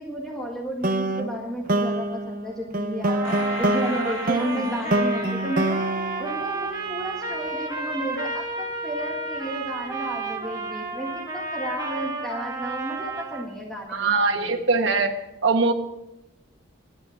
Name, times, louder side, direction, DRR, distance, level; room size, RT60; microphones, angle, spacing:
voice 1, 0.0-3.3 3.6-5.8 6.2-14.6, equal, 5° left, -2 dB, 1.7 m, -32 dB
sound 1, 0.8-7.2, right 1 dB, 40° right, 0.7 m, -26 dB
Trumpet, 3.1-13.5, right 3 dB, 20° right, 2.0 m, -32 dB
sound 2, 3.2-6.7 7.2-7.3, left 3 dB, 75° left, 1.9 m, -38 dB
voice 2, 13.9-15.1 15.4-15.7, right 4 dB, 60° right, 4 dB, 1.3 m, -22 dB
11.0 x 10.5 x 5.8 m, 0.87 s
head